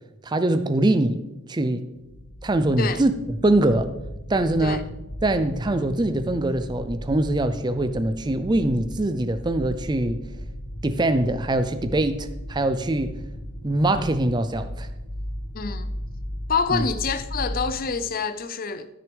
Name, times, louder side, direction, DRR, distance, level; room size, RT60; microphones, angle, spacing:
voice 1, 0.2-1.2 1.5-1.9 2.4-3.1 3.4-3.9 4.3-4.9 5.2-10.2 10.8-13.2 13.6-14.9 16.7-16.8, right 1 dB, 20° right, 0.4 m, -23 dB
sound 1, 2.0-17.8, equal, 80° left, 1.4 m, -36 dB
voice 2, 15.5-15.9 16.5-18.9, left 5 dB, 40° left, 0.5 m, -26 dB
13.5 x 6.3 x 3.4 m
head